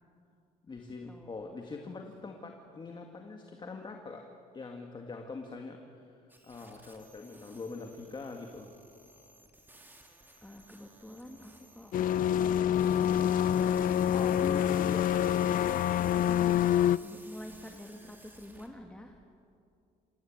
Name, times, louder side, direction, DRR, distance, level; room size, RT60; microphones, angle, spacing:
voice 1, 0.6-4.2 4.5-8.7 14.0-15.6, left 3 dB, 25° left, 3 dB, 2.1 m, -43 dB
sound 1, 6.3-18.7, right 1 dB, 10° right, 3.3 m, -56 dB
voice 2, 10.4-13.2 15.4-19.2, equal, 5° left, 3 dB, 1.9 m, -48 dB
sound 2, 11.9-17.0, left 10 dB, 55° left, 0.5 m, -26 dB
27.5 x 17.0 x 8.9 m, 2.4 s
cardioid pair, 110°, 17 cm